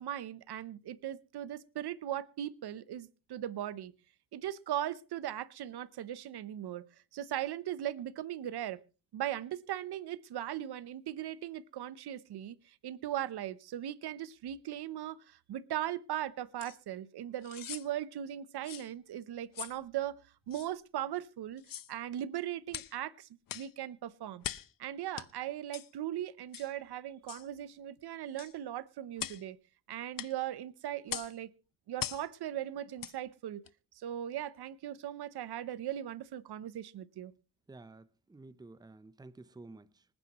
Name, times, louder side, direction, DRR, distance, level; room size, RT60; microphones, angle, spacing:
voice 1, 0.0-3.9 4.3-6.8 7.1-8.8 9.1-12.6 12.8-20.2 20.5-21.6 21.9-23.3 23.5-24.4 24.8-29.6 29.9-31.5 31.9-33.6 34.0-37.3, right 12 dB, 70° right, 0.9 m, -38 dB
sound 1, 16.6-16.8 17.4-17.9 18.6-18.9 19.5-19.8 20.5-20.7 21.6-21.9 22.7-22.9 23.5-23.7 24.4-24.7 25.2-25.3 25.7-25.9 26.5-26.7 27.3-27.5 28.4-28.5 29.2-29.4 30.2-30.3 31.1-31.3 32.0-32.3 33.0-33.2 33.6-33.7, left 11 dB, 55° left, 0.8 m, -41 dB
voice 2, 37.7-40.0, right 2 dB, 10° right, 0.7 m, -52 dB
25.5 x 9.8 x 3.0 m
cardioid pair, 95°, 40 cm